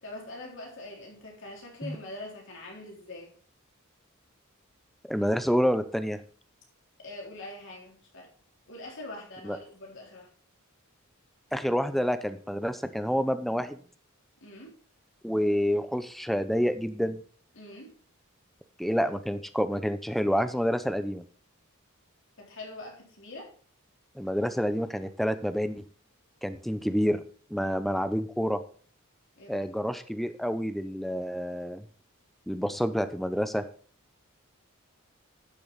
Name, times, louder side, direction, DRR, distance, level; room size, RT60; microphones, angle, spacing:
voice 1, 0.0-3.3 7.0-8.3 8.7-10.3 14.4-14.7 17.6-17.9 22.4-23.5 29.4-29.6, left 2 dB, 60° left, -1 dB, 3.6 m, -43 dB
voice 2, 5.1-6.2 9.4-9.6 11.5-13.8 15.2-17.2 18.8-21.2 24.2-25.8 26.4-27.2 27.5-28.6 29.5-31.8 32.5-33.6, equal, ahead, 11 dB, 0.6 m, -28 dB
12.0 x 6.9 x 4.0 m, 0.44 s
head